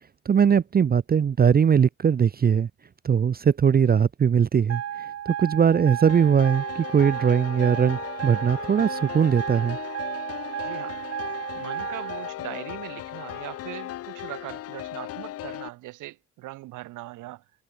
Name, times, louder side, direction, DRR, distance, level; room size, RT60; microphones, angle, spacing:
voice 1, 0.3-2.7 3.0-4.8 5.3-9.8, right 7 dB, 30° right, 0.6 m, -20 dB
sound 1, 4.7-12.3, right 10 dB, 55° right, 1.1 m, -33 dB
sound 2, 6.1-15.7, left 13 dB, 55° left, 0.5 m, -37 dB
voice 2, 10.6-11.0 11.5-17.4, right 18 dB, 85° right, 0.7 m, -40 dB
cardioid pair, 90°, 30 cm